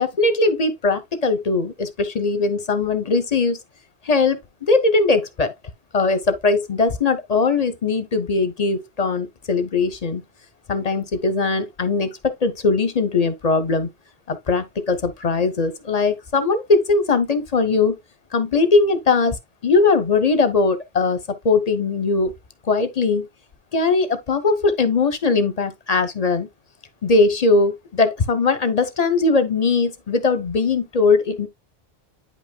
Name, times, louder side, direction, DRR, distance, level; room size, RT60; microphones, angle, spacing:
voice 1, 0.0-3.6 4.0-5.5 5.9-10.2 10.7-13.9 14.3-18.0 18.3-19.4 19.6-22.3 22.6-23.3 23.7-26.5 27.0-31.5, left 3 dB, 45° left, 0.7 m, -20 dB
9.0 x 5.3 x 2.2 m
omnidirectional pair, 1.1 m